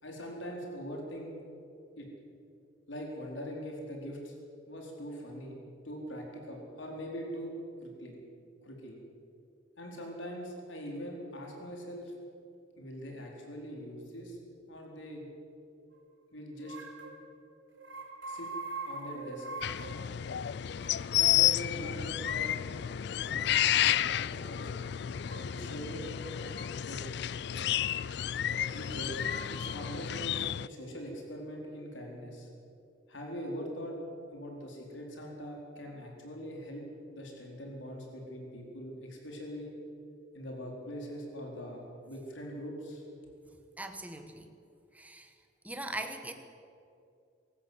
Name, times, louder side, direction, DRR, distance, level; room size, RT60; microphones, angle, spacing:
voice 1, 0.0-1.3 2.0-2.1 2.9-4.3 4.7-5.5 5.8-7.5 7.8-8.2 8.6-9.0 9.8-12.1 12.8-14.4 14.7-15.3 16.3-16.8 18.3-18.5 18.8-19.5 21.1-22.4 23.2-24.9 25.4-26.2 26.8-27.0 28.7-29.2 29.5-30.4 30.6-32.5 33.1-34.0 34.3-36.8 37.1-39.7 40.3-43.0, equal, 80° left, 0 dB, 4.3 m, -42 dB
sound 1, 16.6-17.2 17.7-20.0 20.5-20.6 20.8-21.0 21.9-22.5 23.5-24.0 25.3-25.5 26.3-26.7 27.5-28.0 28.5-29.8, right 3 dB, 90° right, 3.5 m, -44 dB
sound 2, 19.6-30.7, left 11 dB, 60° left, 0.4 m, -31 dB
voice 2, 43.8-44.5 44.9-45.3 45.6-46.3, right 1 dB, 10° right, 6 dB, 1.4 m, -40 dB
24.5 x 13.5 x 8.1 m, 2.5 s
head